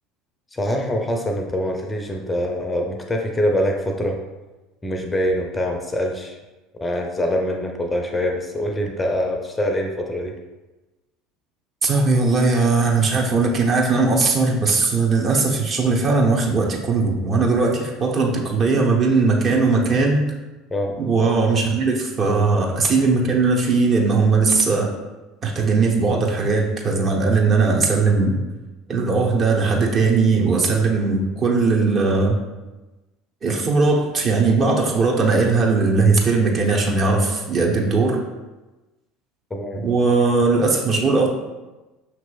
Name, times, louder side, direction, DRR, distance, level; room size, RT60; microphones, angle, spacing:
voice 1, 0.5-4.2 4.8-6.4 6.8-10.3 20.7-20.9 39.5-39.9, equal, 20° left, 2 dB, 0.5 m, -24 dB
voice 2, 11.8-20.2 21.0-24.9 25.4-28.4 28.9-32.3 33.4-38.2 39.8-41.3, right 4 dB, 40° right, -1 dB, 0.8 m, -19 dB
5.8 x 3.0 x 2.3 m, 1.1 s
figure-of-eight pair, 70°, 0 cm